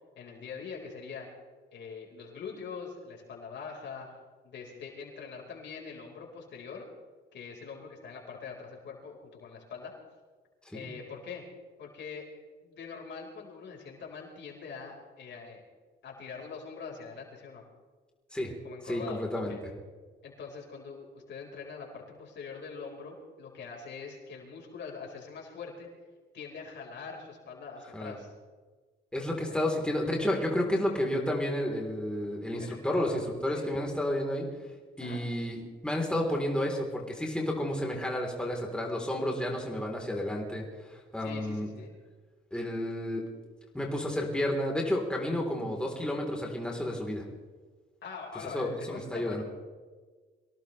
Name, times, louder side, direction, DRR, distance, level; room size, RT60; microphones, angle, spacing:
voice 1, 0.2-1.3 1.7-4.1 4.4-6.9 7.3-9.9 10.7-11.4 11.8-12.2 12.6-15.6 16.0-17.6 18.6-19.6 20.2-25.9 26.3-28.3 29.5-29.6 32.6-33.2 33.5-33.7 35.0-35.2 41.2-41.9 48.0-49.4, left 5 dB, 65° left, -1 dB, 4.8 m, -43 dB
voice 2, 18.9-19.6 27.9-28.2 29.1-34.5 35.0-40.6 40.9-41.7 42.5-43.2 43.7-47.2 48.5-49.4, left 1 dB, 5° left, -1 dB, 3.7 m, -31 dB
24.5 x 17.5 x 3.4 m, 1.4 s
cardioid pair, 90°, 20 cm